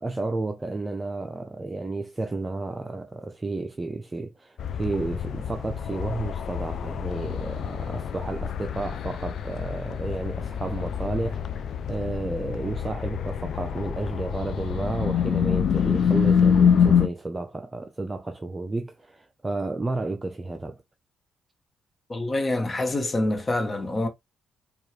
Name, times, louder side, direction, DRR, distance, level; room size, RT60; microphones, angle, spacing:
voice 1, 0.0-11.4 11.9-20.8, right 2 dB, 25° right, 0.6 m, -32 dB
sound 1, 4.6-17.1, left 7 dB, 65° left, 0.4 m, -26 dB
voice 2, 22.1-24.1, left 2 dB, 35° left, 1.2 m, -26 dB
4.5 x 2.5 x 3.3 m
hypercardioid pair, 50°, 0 cm